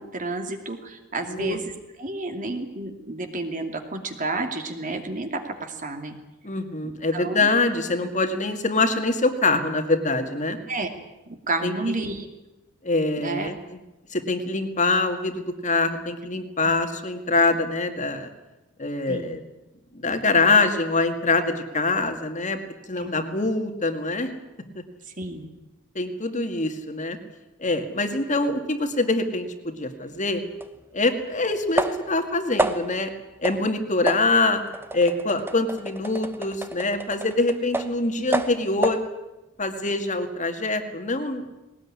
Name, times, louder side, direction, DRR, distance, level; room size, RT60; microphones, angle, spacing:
voice 1, 0.0-1.7 2.0-6.1 7.1-7.5 10.7-10.9 11.3-12.3 13.2-13.5 19.1-19.4 23.0-23.1 25.2-25.5, right 2 dB, 40° right, 6 dB, 2.6 m, -30 dB
voice 2, 6.4-10.6 11.6-11.7 12.8-13.8 14.1-18.3 18.8-19.4 19.9-22.6 22.9-24.3 26.0-27.2 27.6-30.4 30.9-33.1 33.4-34.6 34.9-39.0 39.6-41.4, left 3 dB, 35° left, 6 dB, 2.2 m, -24 dB
sound 1, 30.6-30.7 31.8-32.2 32.6-33.0 33.4-33.7 34.1-38.0 38.3-39.1, right 1 dB, 10° right, 1.1 m, -29 dB
20.0 x 19.0 x 9.9 m, 1.0 s
head